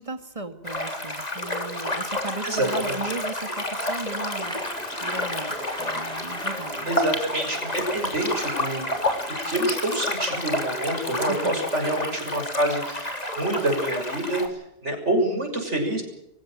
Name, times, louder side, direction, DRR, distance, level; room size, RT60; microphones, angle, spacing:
voice 1, 0.0-4.6 5.0-6.9 11.3-11.6, right 3 dB, 30° right, 8 dB, 2.4 m, -36 dB
sound 1, 0.6-14.5, left 1 dB, 35° left, 3.7 m, -30 dB
voice 2, 2.4-3.1 6.9-8.9 9.5-16.0, right 1 dB, 75° right, 4 dB, 6.8 m, -27 dB
sound 2, 4.4-9.4, equal, 5° left, 4.4 m, -40 dB
25.0 x 16.0 x 7.7 m, 0.84 s
omnidirectional pair, 1.2 m